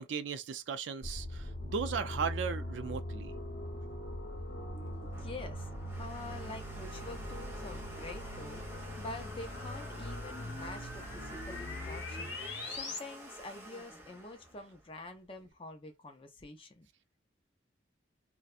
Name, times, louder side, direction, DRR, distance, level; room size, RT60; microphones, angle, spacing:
voice 1, 0.0-3.3, right 6 dB, 75° right, 0.4 m, -37 dB
sound 1, 1.0-13.0, left 1 dB, 65° left, 0.8 m, -41 dB
voice 2, 4.7-12.4 12.7-16.9, left 2 dB, 30° left, 0.4 m, -47 dB
Domestic sounds home sounds, 4.7-15.4, right 1 dB, 15° right, 0.7 m, -51 dB
2.6 x 2.1 x 2.4 m
head